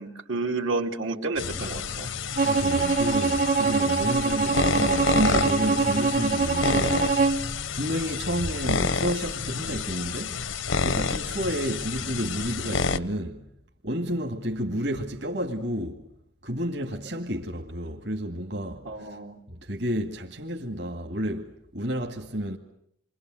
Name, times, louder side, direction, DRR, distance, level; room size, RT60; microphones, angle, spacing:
voice 1, 0.0-2.1 18.8-19.4, right 3 dB, 85° right, 2.9 m, -30 dB
sound 1, 1.4-13.0, left 4 dB, 90° left, 1.0 m, -29 dB
Bowed string instrument, 2.4-7.4, right 4 dB, 40° right, 1.2 m, -24 dB
voice 2, 2.4-7.1 7.7-10.4 10.8-13.5 13.8-16.0 16.4-19.2 19.5-22.6, equal, 60° right, 2.2 m, -31 dB
28.5 x 24.5 x 7.8 m
head